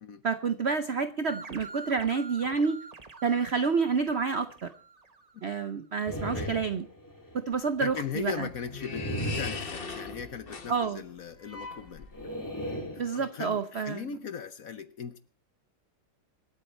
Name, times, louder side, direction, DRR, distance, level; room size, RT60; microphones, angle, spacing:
voice 1, 0.2-2.8 3.2-4.7 5.4-6.9 7.3-8.5 10.7-11.0 13.0-14.1, right 5 dB, 75° right, 11 dB, 0.6 m, -29 dB
sound 1, 1.3-5.6, right 3 dB, 30° right, 0.7 m, -47 dB
sound 2, 6.1-7.4 8.9-10.4 12.1-13.6, equal, 10° left, 2.1 m, -37 dB
voice 2, 6.2-6.6 7.8-12.1 12.9-15.2, left 7 dB, 55° left, 12 dB, 1.0 m, -38 dB
sound 3, 7.5-12.5, left 4 dB, 30° left, 1.3 m, -41 dB
26.0 x 8.8 x 4.3 m, 0.38 s
omnidirectional pair, 2.2 m